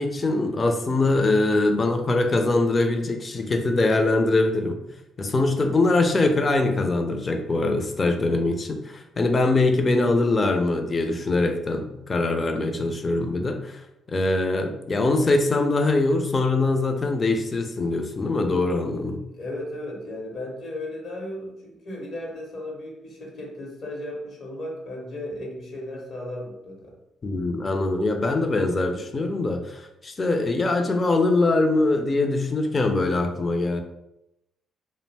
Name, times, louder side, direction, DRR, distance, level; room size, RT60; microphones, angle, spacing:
voice 1, 0.0-4.8 5.2-13.8 14.1-19.2 27.2-33.8, left 2 dB, 35° left, 5 dB, 0.4 m, -23 dB
voice 2, 19.3-26.9, left 1 dB, 60° left, 0 dB, 0.9 m, -35 dB
2.5 x 2.0 x 3.3 m, 0.86 s
hypercardioid pair, 55°, 0 cm